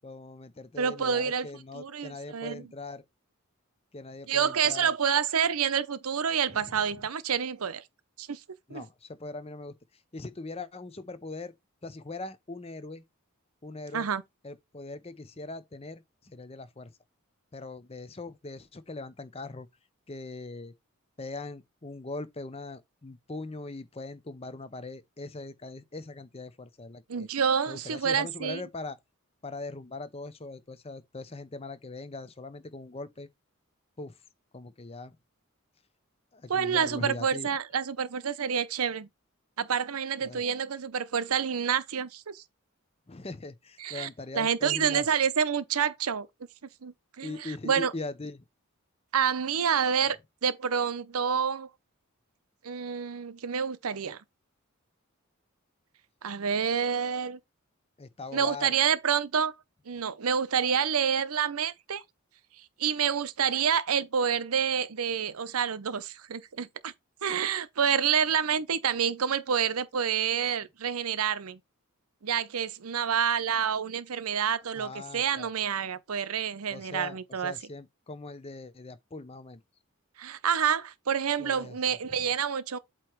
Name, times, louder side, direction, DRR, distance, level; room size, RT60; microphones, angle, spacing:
voice 1, 0.0-3.0 3.9-4.9 6.5-6.9 8.7-9.7 10.1-11.5 11.8-13.0 13.6-14.1 14.4-16.9 17.5-19.7 20.1-20.7 21.2-27.3 27.7-29.0 29.4-33.3 34.0-34.2 34.5-35.2 36.3-37.6 40.2-40.4 43.1-45.2 47.2-48.4 58.0-58.7 74.7-75.5 76.7-79.6 81.4-82.3, left 3 dB, 25° left, 0.6 m, -41 dB
voice 2, 0.8-1.5 1.7-2.7 4.3-7.8 8.2-8.4 8.7-8.8 13.9-14.2 27.1-28.6 36.5-39.1 39.6-42.4 43.8-44.1 44.3-46.3 46.8-47.9 49.1-50.2 50.4-51.7 52.6-54.2 56.2-57.4 58.3-59.5 59.9-62.0 62.8-66.9 67.2-71.6 72.2-77.5 80.2-82.8, right 7 dB, 80° right, 0.7 m, -28 dB
8.2 x 3.0 x 4.5 m
head